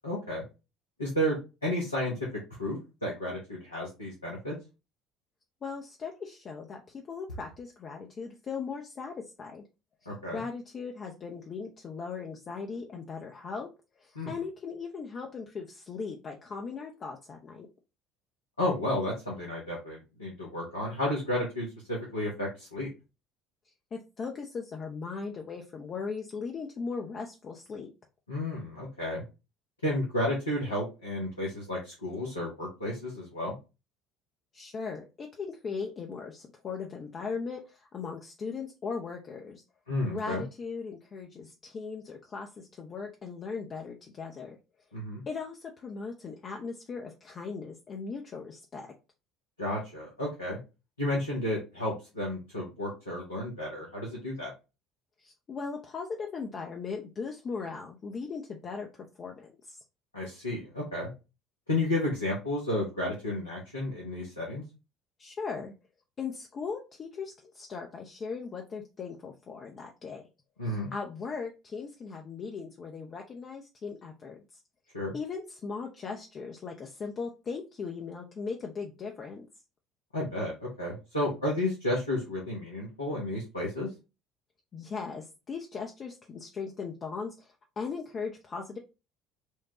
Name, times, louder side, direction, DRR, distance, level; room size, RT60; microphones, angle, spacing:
voice 1, 0.0-0.4 1.0-2.1 2.6-4.5 10.1-10.4 14.1-14.3 18.6-22.9 28.3-29.2 29.8-33.5 39.9-40.4 44.9-45.2 49.6-50.6 51.0-54.5 60.1-61.1 61.7-64.6 70.6-70.9 74.9-75.1 80.1-83.9, left 1 dB, 85° left, -5 dB, 0.9 m, -32 dB
voice 2, 5.6-9.6 10.3-13.7 14.0-17.7 23.9-27.9 34.5-39.6 40.1-44.6 45.3-48.9 55.2-58.9 59.2-59.8 65.2-65.7 66.2-70.2 70.6-74.4 75.1-79.5 84.7-88.8, left 5 dB, 35° left, 1 dB, 0.6 m, -38 dB
4.5 x 2.2 x 2.8 m, 0.29 s
figure-of-eight pair, 60°, 0 cm